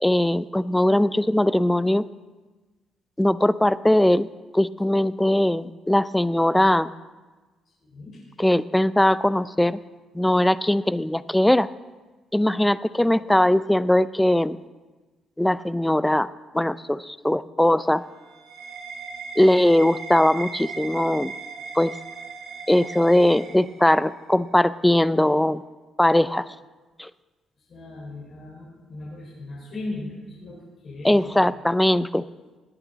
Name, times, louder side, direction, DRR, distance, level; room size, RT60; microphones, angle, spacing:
voice 1, 0.0-2.1 3.2-4.3 4.5-6.9 8.4-9.8 10.1-11.7 12.3-14.6 15.4-16.3 16.5-18.0 19.4-21.3 21.7-22.0 22.7-25.6 26.0-26.5 27.0-27.1 31.0-32.2, left 1 dB, 5° left, 16 dB, 0.4 m, -20 dB
voice 2, 7.8-8.2 27.7-31.3, left 2 dB, 55° left, -6 dB, 4.4 m, -37 dB
sound 1, 17.7-24.2, right 5 dB, 80° right, 2.7 m, -38 dB
19.0 x 8.6 x 4.0 m, 1.2 s
cardioid pair, 90°, 0 cm